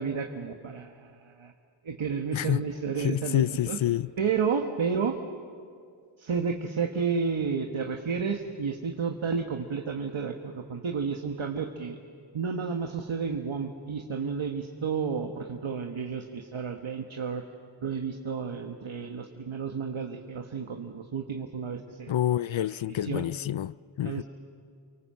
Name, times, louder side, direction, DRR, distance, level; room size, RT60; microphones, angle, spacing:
voice 1, 0.0-1.5 1.8-3.8 4.2-5.2 6.2-12.0 12.3-17.4 17.8-22.1 22.7-23.3 24.0-24.2, right 6 dB, 90° right, 1.5 m, -31 dB
voice 2, 2.3-2.6 3.0-4.1 22.1-24.2, left 12 dB, 80° left, 0.6 m, -28 dB
29.5 x 24.0 x 7.8 m
wide cardioid pair, 90°, 46 cm